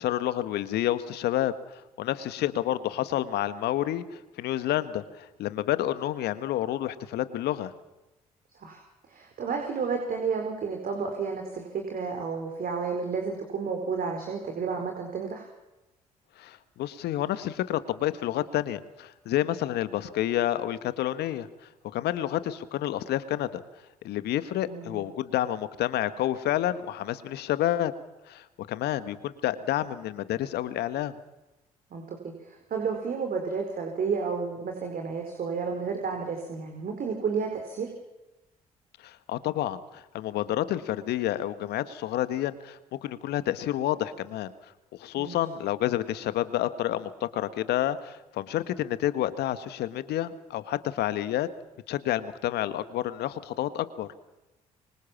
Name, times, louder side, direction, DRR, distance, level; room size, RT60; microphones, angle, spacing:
voice 1, 0.0-7.7 16.4-21.5 21.9-23.6 24.0-27.9 28.3-31.1 39.0-44.5 45.0-51.5 51.9-54.1, left 13 dB, 65° left, 13 dB, 1.6 m, -29 dB
voice 2, 8.5-15.5 24.6-25.0 31.9-37.9 45.2-45.4, right 5 dB, 55° right, 3 dB, 4.6 m, -31 dB
25.0 x 24.5 x 7.4 m, 1.0 s
hypercardioid pair, 45°, 18 cm